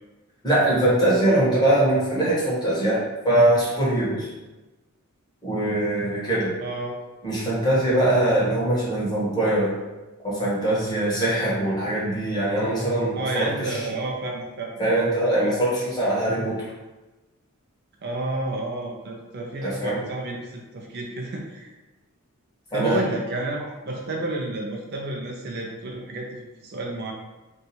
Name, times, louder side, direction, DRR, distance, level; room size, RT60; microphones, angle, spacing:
voice 1, 0.4-4.3 5.4-6.5 7.2-9.7 10.2-13.8 14.8-16.6 19.6-20.0 22.7-23.0, right 1 dB, 20° left, -7 dB, 1.1 m, -22 dB
voice 2, 6.6-7.0 13.1-14.7 18.0-21.7 22.7-27.1, right 2 dB, 45° right, -1 dB, 0.4 m, -30 dB
2.7 x 2.4 x 4.1 m, 1.1 s
head